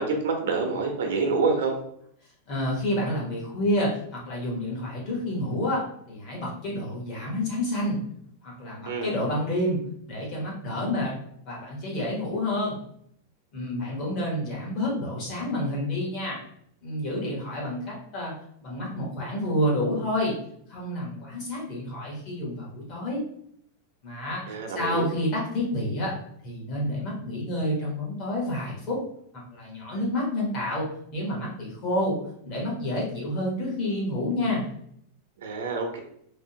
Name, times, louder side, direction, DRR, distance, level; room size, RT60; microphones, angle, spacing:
voice 1, 0.0-1.7 8.9-9.2 24.5-25.0 35.4-36.0, right 4 dB, 90° right, 3 dB, 0.7 m, -27 dB
voice 2, 2.5-8.0 8.4-9.8 10.1-11.1 11.5-12.8 13.5-16.4 16.8-18.3 18.6-20.4 20.7-23.2 24.0-24.4 24.7-26.2 26.4-29.0 29.5-30.9 31.1-32.2 32.4-34.7, left 1 dB, 30° left, -4 dB, 1.0 m, -29 dB
3.4 x 2.0 x 2.7 m, 0.67 s
supercardioid pair, 180°, 0 cm